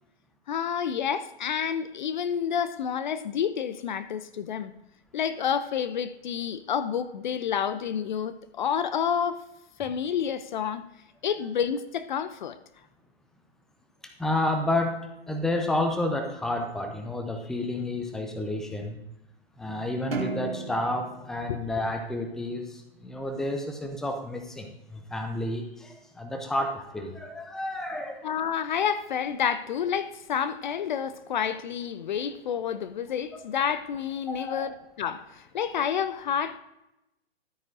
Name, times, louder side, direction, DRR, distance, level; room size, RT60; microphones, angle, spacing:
voice 1, 0.5-4.7 5.1-9.4 9.8-10.8 11.2-12.6 21.5-21.6 28.2-36.6, left 8 dB, 45° left, 0.5 m, -29 dB
voice 2, 14.2-15.0 15.3-19.0 19.6-28.3 34.3-34.7, left 1 dB, ahead, 0.6 m, -30 dB
sound 1, 20.1-22.7, right 5 dB, 65° right, 1.5 m, -36 dB
12.5 x 8.9 x 2.6 m
figure-of-eight pair, 115°, 31 cm